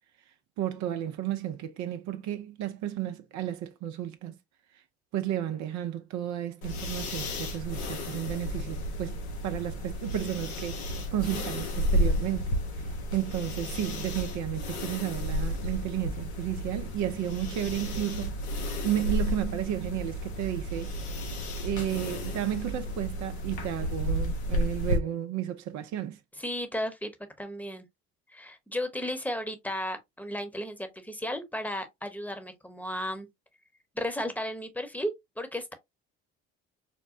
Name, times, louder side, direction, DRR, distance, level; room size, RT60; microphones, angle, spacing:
voice 1, 0.6-4.3 5.1-9.2 9.4-12.6 13.1-20.9 21.6-26.2, right 11 dB, 60° right, 0.6 m, -33 dB
sound 1, 6.6-25.0, equal, 90° left, 1.0 m, -32 dB
voice 2, 26.4-27.8 28.3-33.3 33.9-35.7, left 1 dB, 5° left, 1.0 m, -34 dB
5.1 x 2.1 x 2.6 m
hypercardioid pair, 60°, 32 cm